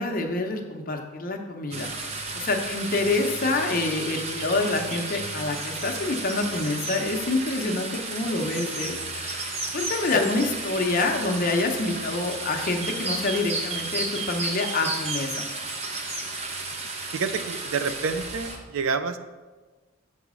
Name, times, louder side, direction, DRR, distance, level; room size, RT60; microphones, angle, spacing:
voice 1, 0.0-1.9 2.2-15.4, left 3 dB, 40° left, 3 dB, 0.7 m, -27 dB
sound 1, 1.7-18.6, right 3 dB, 30° right, 0.7 m, -33 dB
voice 2, 17.1-19.2, right 5 dB, 70° right, 11 dB, 0.4 m, -28 dB
7.0 x 4.1 x 4.9 m, 1.3 s
head